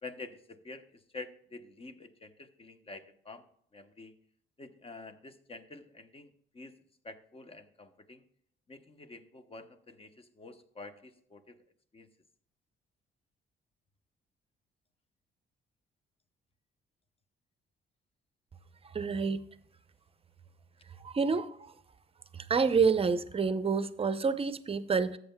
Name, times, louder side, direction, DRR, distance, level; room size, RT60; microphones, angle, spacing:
voice 1, 0.0-3.4 3.7-4.1 4.6-6.7 7.0-8.2 8.7-11.6 11.9-12.1, left 3 dB, 30° left, 9 dB, 0.9 m, -48 dB
voice 2, 18.9-19.4 21.0-21.7 22.3-25.2, right 5 dB, 30° right, 13 dB, 0.7 m, -28 dB
13.0 x 7.8 x 2.2 m, 0.66 s
cardioid pair, 90°, 20 cm